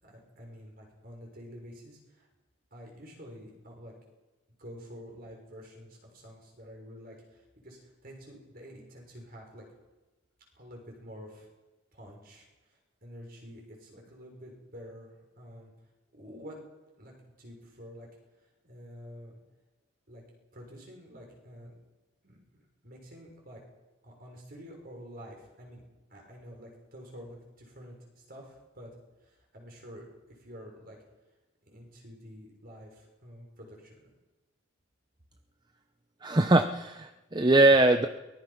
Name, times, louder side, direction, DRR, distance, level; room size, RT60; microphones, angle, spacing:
voice 1, 0.0-2.3 2.7-3.9 4.6-9.6 10.5-11.5 11.9-15.7 16.1-16.6 17.0-18.1 18.6-19.4 20.1-20.2 20.5-21.7 22.2-22.4 22.8-23.6 24.0-25.8 26.1-28.9 29.2-31.0 31.6-34.1, equal, 45° right, 0 dB, 6.3 m, -48 dB
voice 2, 36.2-38.1, right 2 dB, 20° right, 7 dB, 0.7 m, -22 dB
23.0 x 20.0 x 5.9 m, 1.1 s
head